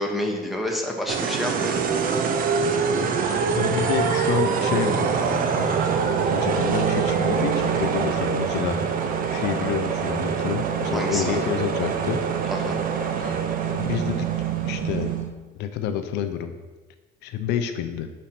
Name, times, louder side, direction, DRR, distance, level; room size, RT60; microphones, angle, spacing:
voice 1, 0.0-2.0 10.9-11.5 12.5-12.8, left 1 dB, ahead, 0 dB, 1.1 m, -28 dB
sound 1, 1.1-15.3, right 6 dB, 55° right, 0.7 m, -24 dB
voice 2, 3.3-8.9 9.3-12.2 13.2-13.4 13.7-14.3 14.6-15.1 15.6-16.5 17.2-18.1, left 9 dB, 90° left, 8 dB, 0.5 m, -29 dB
5.2 x 4.2 x 5.9 m, 1.2 s
cardioid pair, 110°, 17 cm